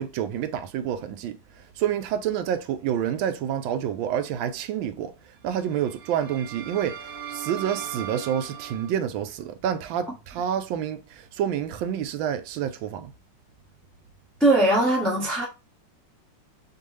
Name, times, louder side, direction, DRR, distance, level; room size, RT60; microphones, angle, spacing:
voice 1, 0.0-1.4 1.8-5.1 5.4-13.1, right 9 dB, 80° right, 1.3 m, -28 dB
sound 1, 5.5-8.9, right 9 dB, 50° right, 0.6 m, -38 dB
voice 2, 14.4-15.5, right 1 dB, ahead, 0.5 m, -20 dB
4.5 x 2.8 x 3.1 m
omnidirectional pair, 2.2 m